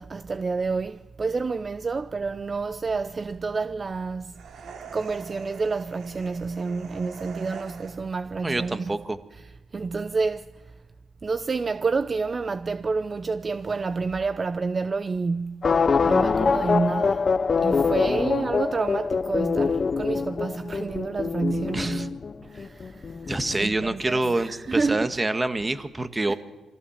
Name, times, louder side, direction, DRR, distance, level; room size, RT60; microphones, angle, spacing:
voice 1, 0.0-4.3 4.9-9.0 9.7-10.5 11.2-15.7 16.0-17.3 17.6-22.2 22.4-23.3 23.6-25.1 26.3-26.4, right 4 dB, 45° right, 0.7 m, -29 dB
sound 1, 4.3-8.2, right 6 dB, 75° right, 2.7 m, -43 dB
voice 2, 8.4-9.2 21.7-22.1 23.3-26.3, right 2 dB, 25° right, 1.7 m, -26 dB
sound 2, 15.6-24.1 24.4-24.5, left 5 dB, 45° left, 0.7 m, -24 dB
24.5 x 15.0 x 7.4 m
supercardioid pair, 55°, 0 cm